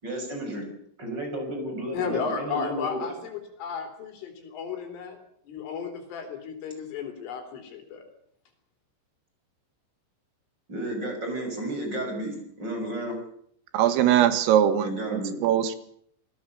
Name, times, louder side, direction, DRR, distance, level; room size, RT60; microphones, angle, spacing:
voice 1, 0.0-0.7 1.0-3.1 10.7-13.3 14.8-15.4, right 1 dB, 20° right, 3 dB, 6.5 m, -32 dB
voice 2, 1.9-5.2 5.5-8.0, left 6 dB, 75° left, 5 dB, 6.3 m, -34 dB
voice 3, 13.7-15.8, right 10 dB, 85° right, 11 dB, 4.2 m, -22 dB
27.5 x 18.5 x 7.0 m, 0.68 s
omnidirectional pair, 5.8 m